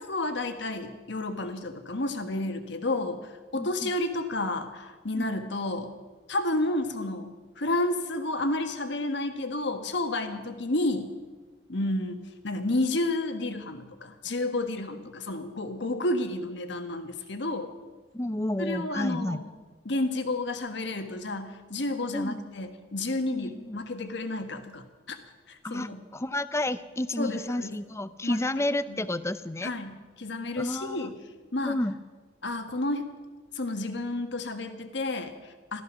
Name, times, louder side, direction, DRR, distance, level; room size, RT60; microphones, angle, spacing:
voice 1, 0.0-5.9 6.3-11.1 11.7-17.7 18.6-19.5 19.8-25.2 25.5-26.0 27.2-27.8 28.2-28.4 28.9-29.0 29.6-31.1 31.5-31.8 32.4-33.1 33.5-35.8, left 2 dB, 65° left, 7 dB, 1.5 m, -31 dB
voice 2, 3.5-3.9 5.2-5.3 15.9-16.0 18.1-19.4 22.1-22.4 23.4-23.8 25.6-29.7 30.6-31.1 31.6-31.9, left 1 dB, 15° left, 14 dB, 0.5 m, -31 dB
14.5 x 13.5 x 6.2 m, 1.3 s
head